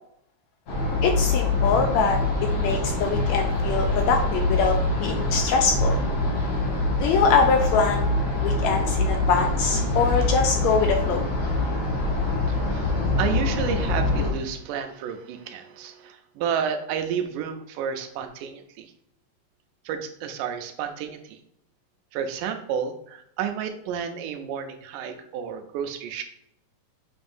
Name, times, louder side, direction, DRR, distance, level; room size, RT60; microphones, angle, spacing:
sound 1, 0.7-14.3, left 2 dB, 55° left, 2.6 m, -24 dB
voice 1, 1.0-6.0 7.0-8.1 8.4-11.3, left 5 dB, 75° left, 4 dB, 1.7 m, -23 dB
voice 2, 12.5-18.9 19.9-21.4 22.1-26.2, right 7 dB, 90° right, 6 dB, 2.2 m, -31 dB
6.8 x 5.3 x 2.6 m, 0.75 s
omnidirectional pair, 3.6 m